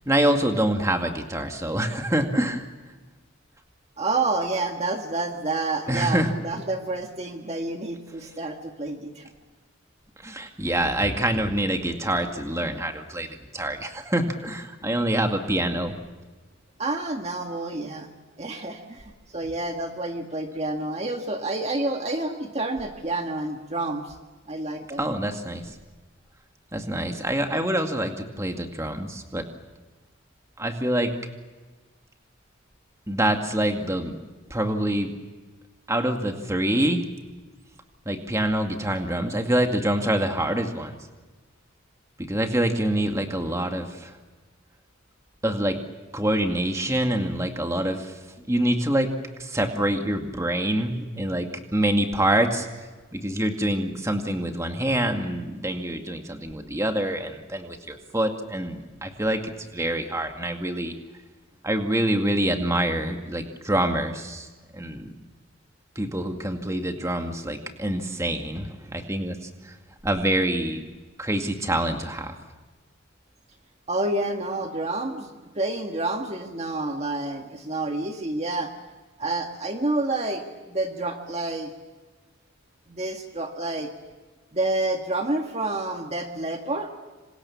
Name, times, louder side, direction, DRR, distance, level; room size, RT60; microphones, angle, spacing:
voice 1, 0.1-2.7 5.9-6.3 10.2-15.9 25.0-25.8 26.7-29.5 30.6-31.1 33.1-34.2 34.5-35.1 35.9-37.0 38.1-41.0 42.2-44.2 45.4-45.8 46.1-48.2 48.5-49.1 49.4-52.7 53.1-59.4 59.7-60.9 61.6-64.5 64.7-65.1 66.0-69.8 70.0-70.8 71.2-72.3, right 1 dB, 15° right, 4 dB, 2.1 m, -26 dB
voice 2, 4.0-9.3 16.8-18.1 18.4-24.2 24.5-25.0 73.9-78.7 79.2-80.4 80.7-81.7 82.9-83.9 84.5-86.9, right 2 dB, 30° right, 3 dB, 1.7 m, -29 dB
27.0 x 27.0 x 7.2 m, 1.3 s
head